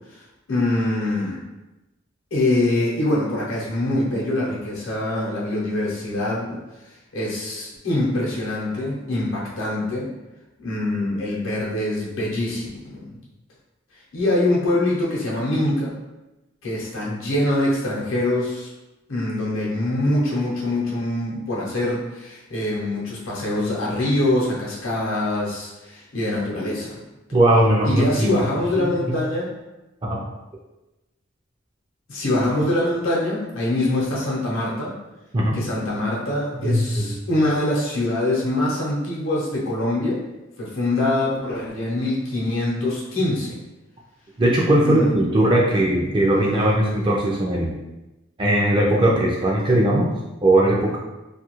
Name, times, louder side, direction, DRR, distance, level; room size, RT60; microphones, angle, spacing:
voice 1, 0.5-1.4 2.3-6.6 7.1-10.1 10.6-13.0 14.1-15.9 16.6-18.7 19.1-27.0 27.8-29.5 32.1-34.9 35.5-40.2 40.6-43.6 44.8-45.1 46.3-47.0, left 1 dB, 70° left, -5 dB, 0.7 m, -24 dB
voice 2, 27.3-28.3 28.8-29.2 30.0-30.2 35.3-35.6 36.5-37.1 44.4-47.7 48.4-50.1 50.4-51.0, right 1 dB, 25° right, -3 dB, 0.3 m, -19 dB
2.6 x 2.3 x 3.0 m, 1.0 s
head